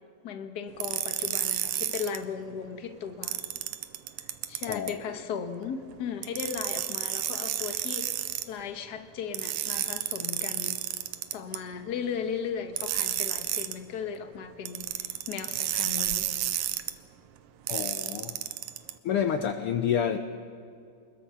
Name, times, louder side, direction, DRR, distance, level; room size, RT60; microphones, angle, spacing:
voice 1, 0.2-3.4 4.2-10.8 11.3-16.4, left 7 dB, 50° left, 1.3 m, -37 dB
sound 1, 0.8-2.2 3.2-4.9 6.2-8.5 9.3-11.6 12.8-13.8 14.7-16.9 17.7-18.9, right 13 dB, 85° right, 2.2 m, -31 dB
voice 2, 4.7-5.0 17.7-18.4 19.0-20.2, left 8 dB, 75° left, 1.3 m, -28 dB
25.5 x 21.0 x 5.8 m
omnidirectional pair, 3.3 m